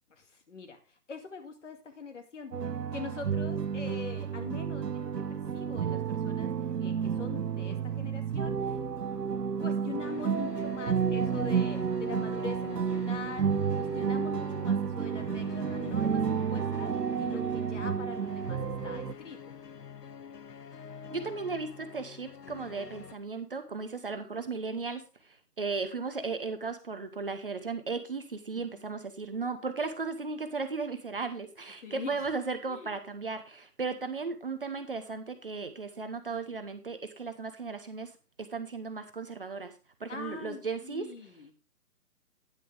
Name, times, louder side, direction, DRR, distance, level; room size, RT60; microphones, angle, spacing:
voice 1, 0.1-2.5 2.9-6.5 6.8-8.8 9.6-19.6 25.6-25.7 28.5-28.8 31.8-32.3 32.7-32.9 40.1-41.5, left 5 dB, 50° left, 6 dB, 2.2 m, -43 dB
sound 1, 2.5-19.1, right 7 dB, 85° right, 1.0 m, -31 dB
sound 2, 10.0-23.1, left 6 dB, 90° left, 1.0 m, -46 dB
voice 2, 21.1-25.0 25.6-38.1 38.4-39.7 40.0-41.1, right 4 dB, 35° right, 9 dB, 0.9 m, -36 dB
10.0 x 9.5 x 3.4 m, 0.33 s
hypercardioid pair, 165°, 47 cm